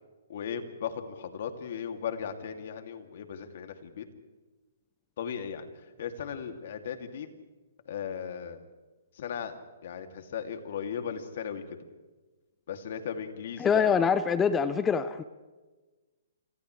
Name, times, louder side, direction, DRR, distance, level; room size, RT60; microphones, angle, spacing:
voice 1, 0.3-4.1 5.2-5.7 6.0-7.3 7.9-8.6 9.2-9.5 9.8-11.8 12.7-14.0, left 7 dB, 60° left, 6 dB, 2.7 m, -36 dB
voice 2, 13.6-15.2, left 6 dB, 15° left, 13 dB, 0.7 m, -24 dB
29.5 x 27.0 x 3.3 m, 1.2 s
hypercardioid pair, 145°, 0 cm